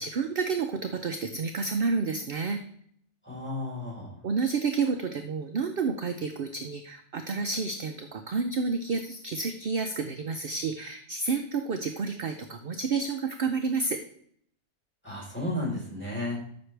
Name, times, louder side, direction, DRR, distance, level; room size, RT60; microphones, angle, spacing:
voice 1, 0.0-2.6 4.2-14.0, right 4 dB, 50° right, 6 dB, 0.8 m, -30 dB
voice 2, 3.2-4.1 15.0-16.4, left 1 dB, 10° left, -4 dB, 4.0 m, -33 dB
13.0 x 6.3 x 3.3 m, 0.63 s
omnidirectional pair, 1.4 m